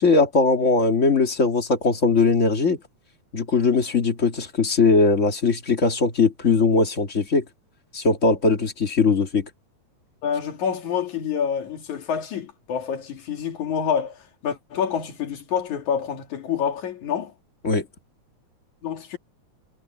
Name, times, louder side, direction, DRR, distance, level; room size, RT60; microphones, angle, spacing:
voice 1, 0.0-2.8 3.3-7.4 7.9-9.5 17.6-17.8, left 4 dB, 25° left, 2.0 m, -20 dB
voice 2, 10.2-17.3 18.8-19.2, left 7 dB, 75° left, 3.8 m, -27 dB
omnidirectional pair, 3.4 m